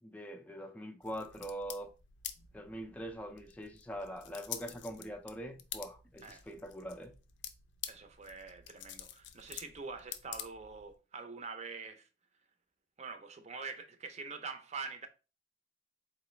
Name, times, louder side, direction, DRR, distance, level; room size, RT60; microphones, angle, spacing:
voice 1, 0.0-1.9 2.5-7.1, equal, 10° left, 0.4 m, -43 dB
sound 1, 1.0-11.0, left 10 dB, 75° left, 0.4 m, -48 dB
voice 2, 7.9-12.1 13.0-15.1, right 4 dB, 40° right, 0.6 m, -45 dB
4.0 x 3.0 x 3.1 m
head